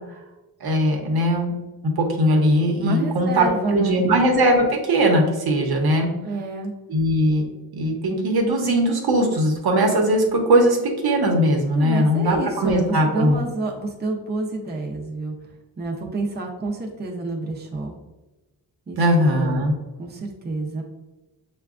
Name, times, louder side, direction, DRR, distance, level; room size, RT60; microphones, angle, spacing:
voice 1, 0.6-1.5 2.0-6.1 6.9-7.5 7.7-10.8 11.0-13.4 19.0-19.7, equal, 75° right, 1 dB, 0.9 m, -19 dB
voice 2, 2.8-4.0 6.2-6.7 11.7-15.3 15.8-18.0 18.9-20.8, right 2 dB, 25° right, 0 dB, 0.5 m, -29 dB
6.7 x 2.3 x 2.4 m, 1.1 s
wide cardioid pair, 140°, 38 cm